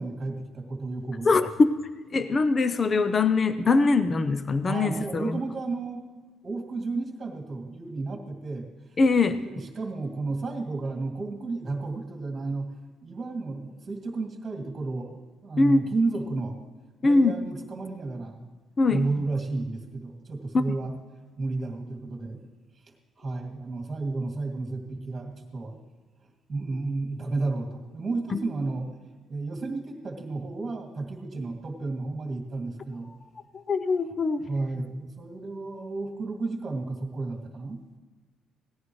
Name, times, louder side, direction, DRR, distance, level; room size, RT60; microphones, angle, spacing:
voice 1, 0.0-1.3 4.7-8.7 9.3-12.7 13.0-16.6 17.0-18.5 18.9-20.9 21.4-22.5 22.8-25.8 26.5-28.9 29.3-33.1 34.5-37.8, right 3 dB, 25° right, 1 dB, 2.3 m, -32 dB
voice 2, 1.3-1.7 2.1-5.4 9.0-9.4 15.6-15.8 17.0-17.3 18.8-19.1 20.5-20.7 28.3-28.4 33.5-34.5, left 3 dB, 25° left, 11 dB, 0.5 m, -22 dB
18.5 x 14.5 x 3.1 m, 1.4 s
cardioid pair, 165°, 0 cm